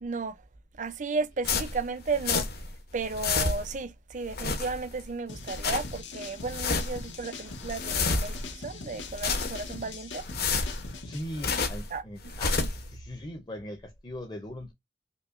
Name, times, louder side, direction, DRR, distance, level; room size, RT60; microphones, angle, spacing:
voice 1, 0.0-0.4 0.8-2.5 2.9-10.2 11.9-12.0, right 4 dB, 40° right, 0.5 m, -34 dB
sound 1, 1.4-2.7 3.0-3.8 4.2-5.0 5.4-6.0 6.4-7.1 7.5-8.5 9.0-9.8 10.2-11.9 12.2-12.9, left 4 dB, 55° left, 1.0 m, -30 dB
sound 2, 5.3-11.2, left 4 dB, 80° left, 1.0 m, -42 dB
voice 2, 7.4-8.1 11.0-14.7, left 1 dB, 25° left, 0.6 m, -40 dB
5.2 x 2.2 x 2.5 m
head